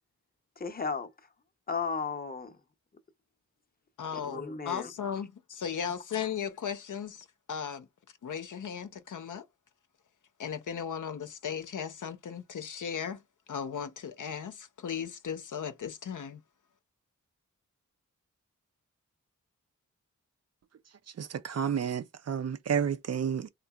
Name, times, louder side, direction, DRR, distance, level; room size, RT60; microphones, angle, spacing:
voice 1, 0.6-1.1 1.7-2.6 4.1-4.9, left 5 dB, 30° left, 0.7 m, -34 dB
voice 2, 4.0-7.9 8.2-9.4 10.4-13.2 13.5-16.4, left 7 dB, 75° left, 0.7 m, -36 dB
voice 3, 21.2-23.5, right 7 dB, 55° right, 0.5 m, -31 dB
3.8 x 2.8 x 2.3 m
wide cardioid pair, 100°, 31 cm